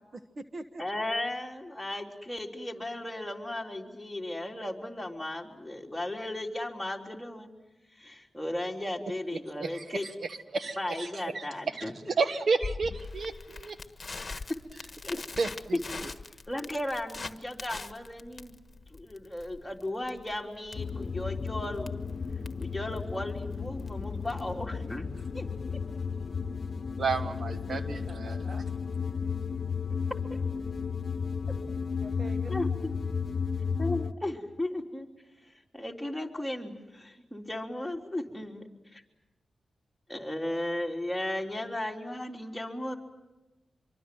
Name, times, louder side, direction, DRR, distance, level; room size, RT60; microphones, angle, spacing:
voice 1, 0.0-1.0 27.7-28.6 32.0-32.6, right 2 dB, 45° right, 8 dB, 1.2 m, -45 dB
voice 2, 0.8-7.5 8.0-10.1 10.8-11.9 14.3-14.4 15.0-15.2 15.7-16.1 16.5-18.6 18.9-21.9 22.6-25.1 25.3-25.8 32.5-32.9 33.8-35.1 35.7-38.6 38.9-39.0 40.1-43.0, left 1 dB, 5° left, 0 dB, 3.7 m, -35 dB
voice 3, 9.6-11.4 11.7-11.8 12.2-13.8 15.4-15.5 27.0-28.5, right 4 dB, 65° right, 10 dB, 1.3 m, -31 dB
Crackle, 12.6-24.6, left 3 dB, 35° left, 1.5 m, -43 dB
sound 1, 20.7-34.1, left 5 dB, 55° left, 1.0 m, -33 dB
25.5 x 24.0 x 7.8 m, 1.0 s
cardioid pair, 75°, 0 cm